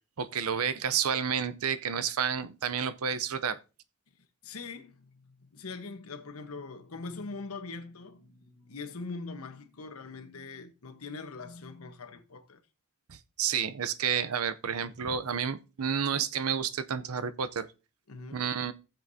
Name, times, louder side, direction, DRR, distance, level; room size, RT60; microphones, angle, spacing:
voice 1, 0.2-3.6 13.1-17.7 18.3-18.7, right 7 dB, 85° right, 0.7 m, -30 dB
voice 2, 4.4-12.6 18.1-18.4, left 3 dB, 90° left, 1.1 m, -42 dB
15.5 x 7.3 x 2.7 m
head